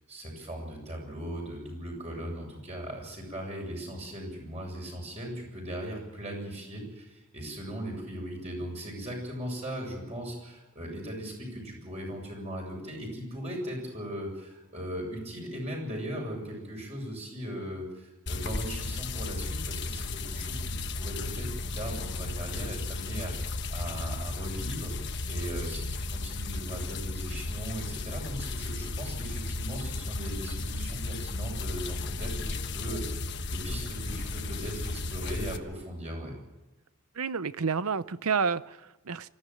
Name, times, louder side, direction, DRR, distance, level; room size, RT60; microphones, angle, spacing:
voice 1, 0.1-33.2 33.5-36.3, right 1 dB, 30° right, 0 dB, 7.3 m, -38 dB
sound 1, 18.3-35.6, left 2 dB, 50° left, 1.3 m, -34 dB
voice 2, 37.2-39.3, right 5 dB, 80° right, 15 dB, 0.8 m, -30 dB
26.0 x 14.0 x 9.3 m, 1.0 s
head